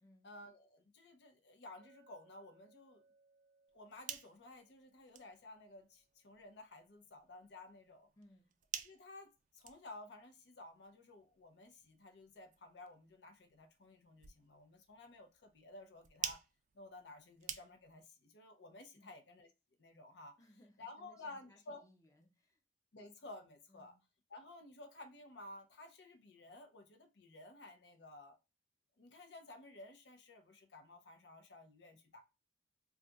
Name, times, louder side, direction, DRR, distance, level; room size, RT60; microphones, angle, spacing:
voice 1, 0.2-3.0 3.7-8.1 8.8-16.4 16.7-19.5 19.8-20.4 20.8-21.8 22.9-24.0 24.3-28.4 29.0-32.2, left 2 dB, 75° left, 0.6 m, -54 dB
Chink clink, 1.8-6.2, right 3 dB, 85° right, 0.6 m, -71 dB
sound 1, 3.7-18.1, right 9 dB, 45° right, 0.3 m, -52 dB
voice 2, 8.2-8.5 18.9-19.2 20.4-22.6 23.7-24.0, left 1 dB, 20° left, 0.5 m, -65 dB
2.4 x 2.3 x 3.9 m
head